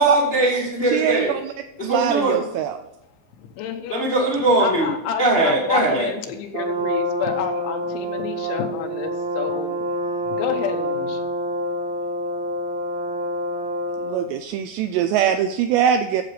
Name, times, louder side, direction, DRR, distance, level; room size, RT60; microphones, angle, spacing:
voice 1, 0.0-1.3 1.8-2.4 3.9-4.9 5.2-6.1, right 2 dB, 50° left, -5 dB, 0.7 m, -20 dB
voice 2, 0.9-1.5 1.8-2.8 14.0-16.2, right 9 dB, 85° right, 8 dB, 2.5 m, -22 dB
voice 3, 3.4-4.1 4.6-9.9 10.3-11.2, left 8 dB, 85° left, 5 dB, 3.4 m, -29 dB
Brass instrument, 6.5-14.3, equal, 60° right, 3.0 m, -27 dB
9.6 x 7.6 x 5.0 m, 0.91 s
omnidirectional pair, 5.4 m